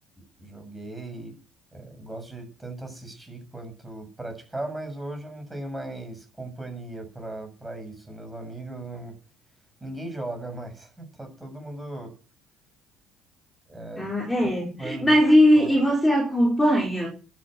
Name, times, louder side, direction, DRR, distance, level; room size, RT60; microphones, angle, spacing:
voice 1, 0.4-1.3 1.7-9.2 9.8-12.1 13.7-14.1 14.8-15.2 15.6-15.8, right 2 dB, 15° right, 7.3 m, -37 dB
voice 2, 14.0-17.1, equal, 10° left, 4.6 m, -20 dB
12.0 x 9.0 x 7.9 m
supercardioid pair, 95°, 0 cm